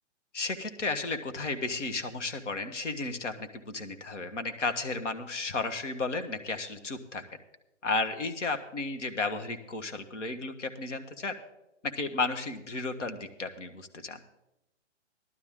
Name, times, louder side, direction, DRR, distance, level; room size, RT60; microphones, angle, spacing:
voice 1, 0.3-7.2 7.8-11.3 11.8-14.2, left 3 dB, 75° left, 7 dB, 1.6 m, -33 dB
16.5 x 12.0 x 3.7 m, 0.92 s
hypercardioid pair, 150°, 36 cm